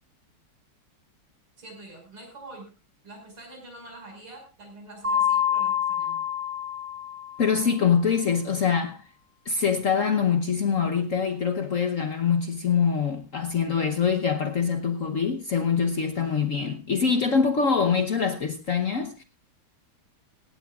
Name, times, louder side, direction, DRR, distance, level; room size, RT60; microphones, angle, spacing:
voice 1, 1.6-2.7 3.0-6.3, right 2 dB, 85° right, 6.5 m, -45 dB
Mallet percussion, 5.0-7.7, left 8 dB, 30° right, 3.2 m, -27 dB
voice 2, 7.4-9.0 9.4-19.2, left 6 dB, 55° left, 0.9 m, -24 dB
17.0 x 16.5 x 2.4 m
omnidirectional pair, 2.3 m